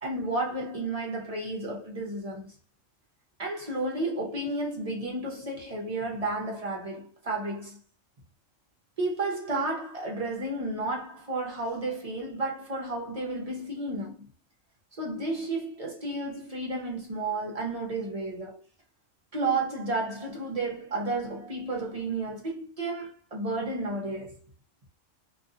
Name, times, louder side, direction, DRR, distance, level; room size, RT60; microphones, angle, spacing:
voice 1, 0.0-2.5 3.4-7.8 9.0-14.3 14.9-18.6 19.3-24.3, right 2 dB, 40° right, 0.5 m, -32 dB
2.6 x 2.3 x 2.4 m
omnidirectional pair, 1.4 m